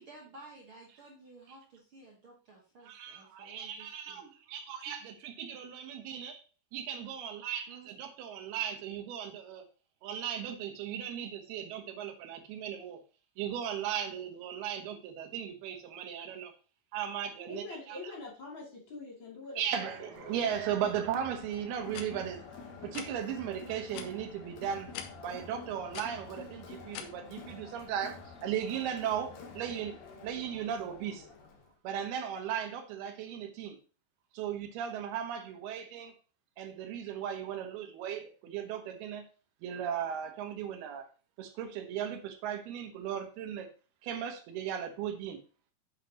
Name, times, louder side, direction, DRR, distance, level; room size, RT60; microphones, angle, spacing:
voice 1, 0.0-4.3 7.7-8.0, right 3 dB, 60° right, 1.4 m, -54 dB
voice 2, 2.8-4.2 4.5-6.4 6.7-9.6 10.0-13.0 13.4-16.5 16.9-18.1 19.6-22.5 22.8-24.9 25.2-31.3 31.8-33.8 34.3-36.1 36.6-39.3 39.6-41.1 41.4-43.7 44.0-45.4, right 9 dB, 90° right, 3.1 m, -37 dB
voice 3, 17.5-19.6 20.2-20.3, left 3 dB, 35° left, 3.1 m, -44 dB
Crowd, 20.1-31.7, left 4 dB, 60° left, 2.1 m, -49 dB
sound 1, 21.9-22.1 22.9-23.1 23.9-24.1 24.9-25.1 25.9-26.1 26.9-27.0, left 9 dB, 80° left, 2.7 m, -41 dB
8.6 x 7.5 x 2.9 m
omnidirectional pair, 4.4 m